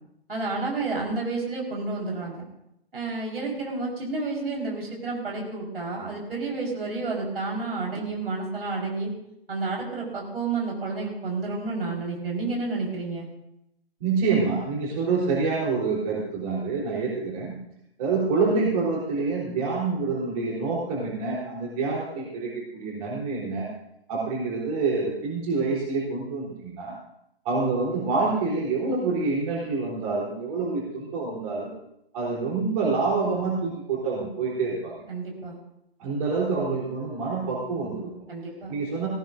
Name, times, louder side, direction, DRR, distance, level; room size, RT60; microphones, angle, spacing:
voice 1, 0.3-2.5 2.9-9.1 9.5-13.3 35.1-35.6 38.3-38.7, right 3 dB, 65° right, -2 dB, 4.4 m, -30 dB
voice 2, 14.0-17.6 18.0-23.7 24.1-27.0 27.4-31.7 32.1-34.9 36.0-38.3 38.7-39.1, right 4 dB, 35° right, -4 dB, 3.6 m, -27 dB
17.0 x 16.5 x 2.6 m, 0.81 s
figure-of-eight pair, 125°, 31 cm